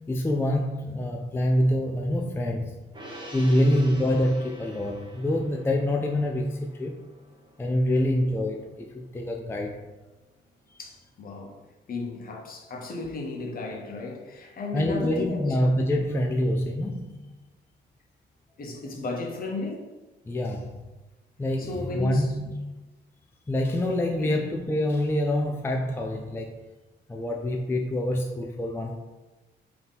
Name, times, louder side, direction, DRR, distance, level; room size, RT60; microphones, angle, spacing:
voice 1, 0.0-2.8 3.3-7.0 7.6-9.8 10.7-10.8 14.7-17.3 20.3-20.8 21.4-22.5 23.5-26.5 27.1-29.0, left 1 dB, 10° left, 1 dB, 0.3 m, -26 dB
Gong, 2.9-9.6 9.9-10.0, equal, 20° right, 1.0 m, -47 dB
voice 2, 3.4-3.8 7.9-8.1 10.8-11.5 11.9-15.6 18.6-19.9 21.6-22.4 24.2-24.4, left 3 dB, 45° left, 1 dB, 0.9 m, -34 dB
3.6 x 2.9 x 4.0 m, 1.1 s
cardioid pair, 90°, 20 cm